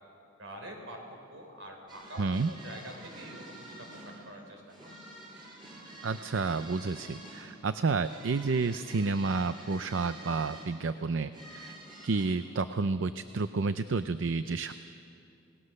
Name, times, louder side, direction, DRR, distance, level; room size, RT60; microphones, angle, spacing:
voice 1, 0.4-1.0 1.3-5.0, right 1 dB, 90° right, 2 dB, 4.6 m, -46 dB
sound 1, 1.9-12.3, right 1 dB, 25° right, 6.2 m, -49 dB
voice 2, 2.2-2.5 6.0-11.8 12.0-14.7, right 4 dB, 70° right, 11 dB, 0.5 m, -30 dB
27.5 x 19.5 x 6.5 m, 2.5 s
head